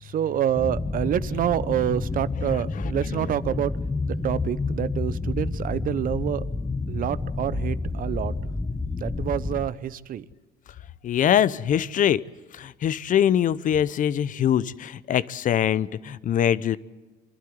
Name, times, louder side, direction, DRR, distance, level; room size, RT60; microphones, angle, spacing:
voice 1, 0.0-3.7 4.1-6.4 6.9-8.5 9.0-10.3, right 10 dB, 55° right, 17 dB, 0.8 m, -27 dB
sound 1, 0.6-9.7, left 3 dB, 15° left, 1.0 m, -29 dB
voice 2, 2.5-3.3 11.0-12.2 12.5-16.8, left 10 dB, 50° left, 19 dB, 0.8 m, -23 dB
26.0 x 12.0 x 9.4 m, 1.3 s
cardioid pair, 110°, 17 cm